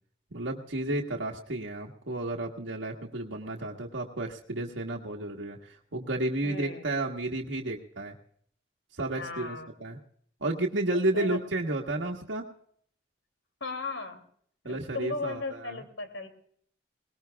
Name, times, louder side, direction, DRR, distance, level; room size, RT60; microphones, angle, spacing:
voice 1, 0.3-8.1 8.9-10.0 10.4-12.5 14.6-15.8, right 2 dB, 80° right, -1 dB, 1.4 m, -32 dB
voice 2, 6.4-6.9 9.2-9.7 10.9-11.4 13.6-14.2 14.6-16.3, left 3 dB, 85° left, 8 dB, 2.7 m, -36 dB
22.5 x 19.0 x 2.3 m, 0.62 s
head